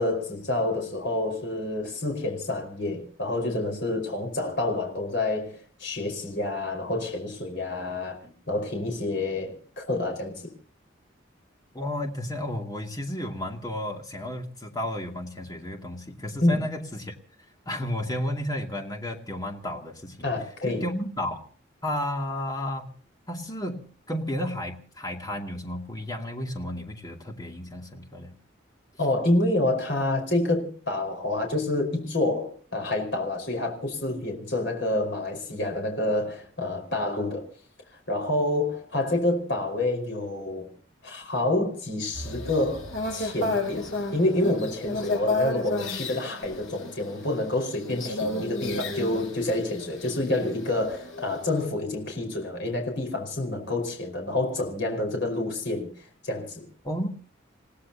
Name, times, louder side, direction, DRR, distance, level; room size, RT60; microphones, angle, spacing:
voice 1, 0.0-10.5 16.4-16.7 20.2-20.8 29.0-37.5 38.1-40.7 41.0-56.7, left 2 dB, 65° left, 5.0 m, -28 dB
voice 2, 11.7-17.1 17.7-20.3 20.6-21.5 21.8-23.0 23.3-28.3 56.8-57.1, left 1 dB, 20° left, 2.5 m, -32 dB
sound 1, 42.1-51.7, left 2 dB, 80° left, 6.7 m, -32 dB
29.5 x 17.0 x 2.9 m
head